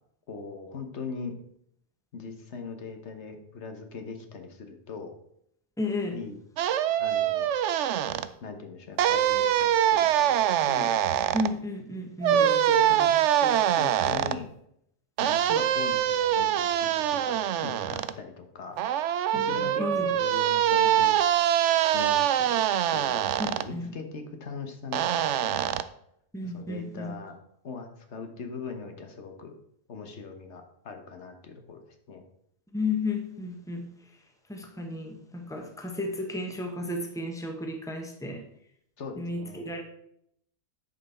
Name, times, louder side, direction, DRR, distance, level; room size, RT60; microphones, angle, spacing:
voice 1, 0.3-1.4 2.1-5.1 6.1-6.4 7.0-7.5 8.4-11.0 12.2-14.5 15.2-18.8 19.3-21.2 21.9-22.6 22.9-23.3 23.6-25.7 26.4-27.3 27.6-29.6 29.9-31.8 32.1-32.2 39.0-39.7, left 4 dB, 75° left, 5 dB, 1.4 m, -40 dB
voice 2, 5.8-6.2 11.3-12.4 19.3-20.2 23.4-23.9 26.3-27.1 32.7-33.9 34.5-38.4 39.2-39.8, left 2 dB, 5° left, 4 dB, 1.1 m, -33 dB
sound 1, 6.6-8.3 9.0-11.5 12.2-14.4 15.2-18.1 18.8-23.7 24.9-25.8, right 10 dB, 90° right, 0.9 m, -24 dB
10.0 x 5.5 x 4.3 m, 0.72 s
omnidirectional pair, 1.2 m